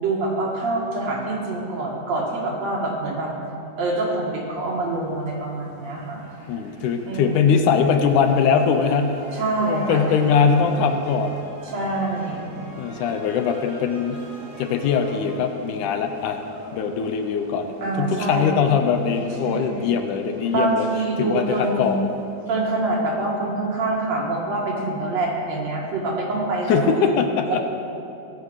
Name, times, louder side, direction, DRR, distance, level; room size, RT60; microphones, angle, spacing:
voice 1, 0.0-3.3 3.8-6.2 7.0-7.6 9.3-10.2 11.7-12.5 17.8-18.6 19.4-19.9 20.5-22.1 22.5-27.2 27.5-27.6, right 2 dB, 60° right, -3 dB, 3.0 m, -25 dB
sound 1, 3.7-22.6, equal, 5° right, 3.6 m, -44 dB
voice 2, 6.5-9.2 9.6-11.3 12.8-14.2 14.6-16.4 16.7-17.7 18.0-20.9 21.2-22.1 26.7-27.6, left 6 dB, 75° left, 6 dB, 2.2 m, -21 dB
17.5 x 7.7 x 6.3 m, 2.7 s
omnidirectional pair, 3.7 m